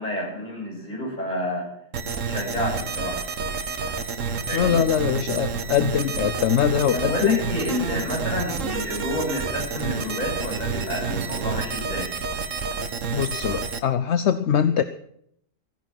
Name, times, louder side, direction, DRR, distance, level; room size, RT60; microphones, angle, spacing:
voice 1, 0.0-1.7 2.2-3.3 4.4-4.8 6.9-12.1, left 1 dB, 35° left, -2 dB, 6.9 m, -29 dB
sound 1, 1.9-13.8, right 5 dB, 75° right, 1.5 m, -29 dB
voice 2, 4.5-7.4 13.1-14.8, left 9 dB, 65° left, 11 dB, 1.0 m, -22 dB
15.5 x 11.0 x 6.1 m, 0.69 s
omnidirectional pair, 1.3 m